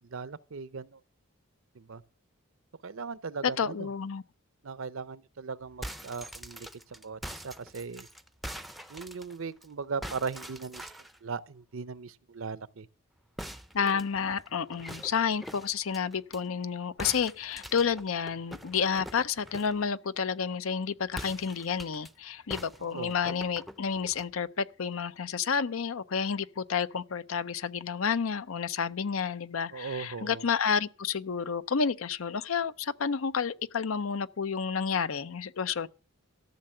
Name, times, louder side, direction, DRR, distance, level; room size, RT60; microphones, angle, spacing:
voice 1, 0.1-1.0 1.7-2.0 2.8-3.9 4.6-8.1 8.9-10.9 11.2-12.9 22.8-23.1 29.7-30.4, right 5 dB, 70° right, 0.6 m, -38 dB
voice 2, 3.4-4.2 13.7-35.9, left 6 dB, 75° left, 0.6 m, -30 dB
sound 1, 5.6-9.7 10.0-11.2 13.4-16.4 17.0-19.8 21.1-22.1 22.5-24.3, equal, ahead, 0.5 m, -44 dB
13.5 x 6.7 x 7.7 m
head